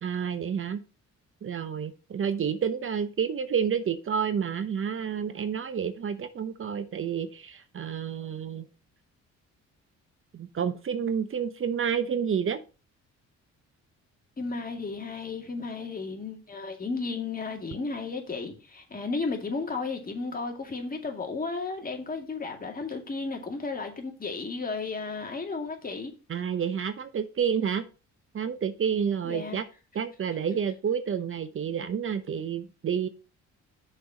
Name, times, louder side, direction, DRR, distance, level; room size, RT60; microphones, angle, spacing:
voice 1, 0.0-0.8 1.4-8.7 10.3-12.6 26.3-27.8 28.3-29.7 29.9-33.1, right 7 dB, 45° right, 0.8 m, -29 dB
voice 2, 14.4-26.1 29.2-29.6, left 4 dB, 30° left, 2.3 m, -34 dB
6.4 x 4.6 x 5.8 m
cardioid pair, 90°, 30 cm